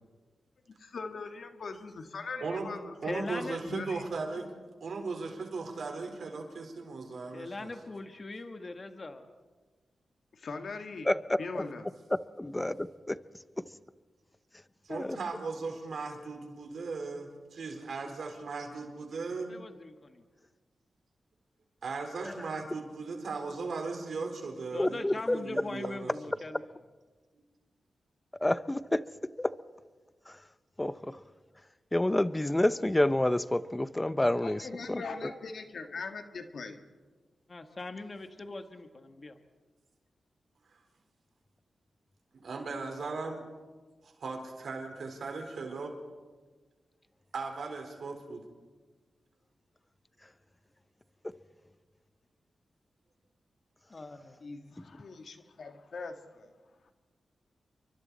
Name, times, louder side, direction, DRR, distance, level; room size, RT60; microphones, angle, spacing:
voice 1, 0.8-4.0 10.3-11.1 11.4-11.9 34.4-36.8 54.4-56.1 56.8-56.9, left 4 dB, 70° left, 6 dB, 1.9 m, -41 dB
voice 2, 2.4-2.7 3.0-4.5 4.8-7.7 14.8-19.5 21.8-26.1 42.4-43.4 44.0-45.9 47.3-48.4, right 4 dB, 70° right, 3 dB, 4.3 m, -37 dB
voice 3, 3.0-3.6 7.3-9.3 19.5-20.2 24.7-26.6 37.5-39.4 53.9-54.4, left 2 dB, 40° left, 6 dB, 1.6 m, -41 dB
voice 4, 12.4-13.2 14.9-15.2 22.3-22.4 24.8-25.4 28.4-29.0 29.4-29.5 30.3-30.4 30.8-31.2 31.9-35.3, left 1 dB, 20° left, 15 dB, 0.8 m, -29 dB
29.5 x 24.0 x 4.2 m, 1.4 s
cardioid pair, 55°, 0 cm